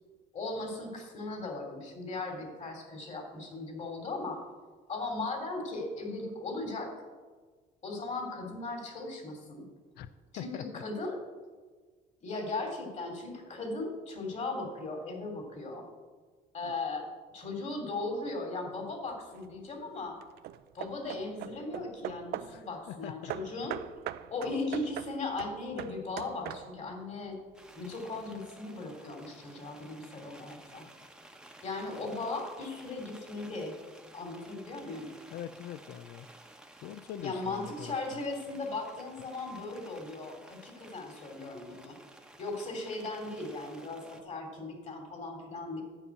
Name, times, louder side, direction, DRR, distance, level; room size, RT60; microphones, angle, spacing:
voice 1, 0.3-4.4 4.9-6.9 7.8-9.6 10.3-11.2 12.2-15.8 16.5-17.1 17.3-20.2 20.7-23.8 24.3-27.4 27.8-30.9 31.6-33.7 34.1-35.1 37.2-42.0 42.4-45.8, left 2 dB, 45° left, 3 dB, 3.0 m, -37 dB
voice 2, 10.4-10.8 16.6-16.7 22.5-23.3 35.3-36.3 36.8-38.2, left 10 dB, 75° left, 13 dB, 0.5 m, -43 dB
Hammer / Wood, 19.1-19.6 20.2-22.7 23.3-27.0, right 13 dB, 75° right, 0.5 m, -41 dB
sound 1, 27.5-44.2, right 1 dB, 5° right, 1.0 m, -54 dB
9.9 x 5.5 x 8.3 m, 1.4 s
cardioid pair, 110°, 17 cm